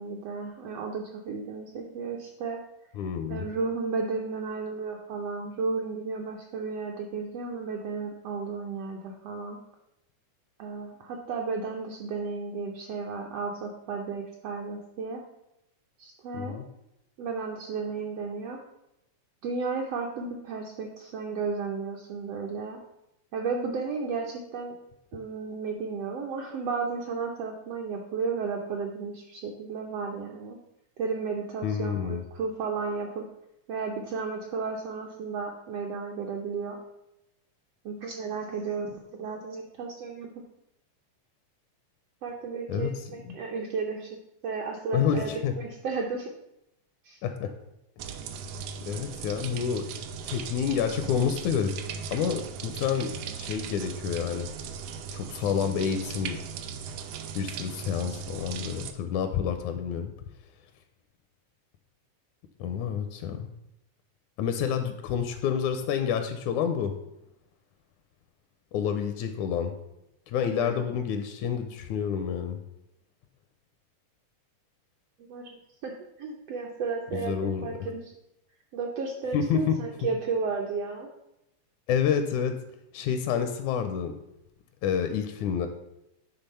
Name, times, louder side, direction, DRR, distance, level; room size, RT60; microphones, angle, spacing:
voice 1, 0.0-2.6 3.3-9.6 10.6-15.2 16.0-16.6 17.2-18.6 19.4-22.8 23.3-24.7 25.1-30.6 31.0-33.3 33.7-36.8 37.8-40.3 42.2-46.3 47.0-47.2 70.6-70.9 75.3-78.1 78.7-81.1, right 4 dB, 70° right, 0 dB, 1.5 m, -33 dB
voice 2, 3.0-3.5 16.3-16.6 31.6-32.2 42.7-42.9 43.3-43.4 44.9-45.5 47.2-47.5 48.9-49.9 50.2-51.7 52.1-53.1 53.4-54.5 55.1-56.4 57.4-60.1 62.6-63.5 64.4-66.9 68.7-69.7 70.3-72.6 77.1-77.8 79.3-79.8 81.9-82.6 82.9-84.1 84.8-85.7, left 7 dB, 80° left, 8 dB, 1.9 m, -28 dB
sound 1, 48.0-58.9, right 6 dB, 85° right, 1.4 m, -38 dB
10.0 x 3.5 x 5.5 m, 0.85 s
omnidirectional pair, 3.5 m